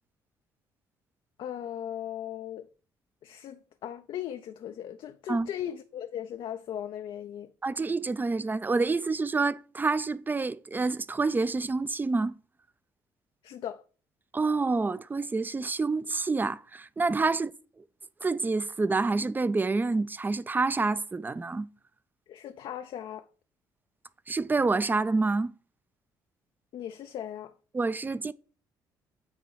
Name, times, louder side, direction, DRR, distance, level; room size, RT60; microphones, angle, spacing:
voice 1, 1.4-2.7 3.2-7.5 13.4-13.8 22.3-23.3 26.7-27.5, left 10 dB, 60° left, 0.4 m, -38 dB
voice 2, 7.6-12.3 14.3-17.5 18.2-21.7 24.3-25.5 27.7-28.3, right 3 dB, 20° right, 0.4 m, -27 dB
8.5 x 3.0 x 4.6 m
hypercardioid pair, 50°, 10 cm